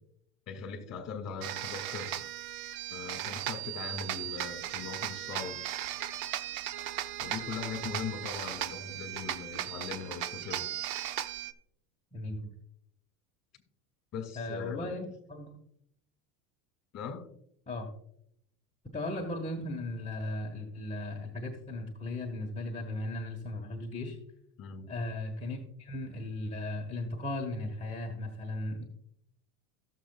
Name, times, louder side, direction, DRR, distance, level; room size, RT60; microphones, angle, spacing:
voice 1, 0.5-2.2 2.9-5.6 7.2-10.6 14.1-15.0 16.9-17.3 24.6-24.9, left 6 dB, 35° left, 2.4 m, -40 dB
sound 1, 1.4-11.5, right 12 dB, 60° right, 0.8 m, -37 dB
voice 2, 12.1-12.5 14.3-15.6 17.7-17.9 18.9-24.2 24.9-28.8, left 1 dB, 15° left, 1.5 m, -37 dB
17.0 x 6.9 x 2.4 m
supercardioid pair, 105°, 44 cm